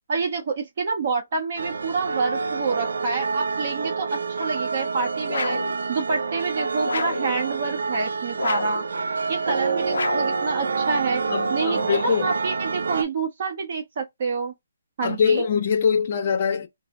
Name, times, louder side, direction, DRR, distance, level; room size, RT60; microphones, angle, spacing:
voice 1, 0.1-5.6 5.9-8.9 9.3-11.2 11.5-14.5 15.0-15.4, right 4 dB, 30° right, 0.9 m, -28 dB
sound 1, 1.6-13.0, right 4 dB, 70° right, 0.4 m, -27 dB
sound 2, 5.3-5.8 6.9-7.3 8.4-8.9 9.9-10.4, left 4 dB, 65° left, 0.4 m, -29 dB
voice 2, 11.3-12.3 15.0-16.7, left 6 dB, 25° left, 0.7 m, -23 dB
3.2 x 2.0 x 2.4 m
hypercardioid pair, 175°, 0 cm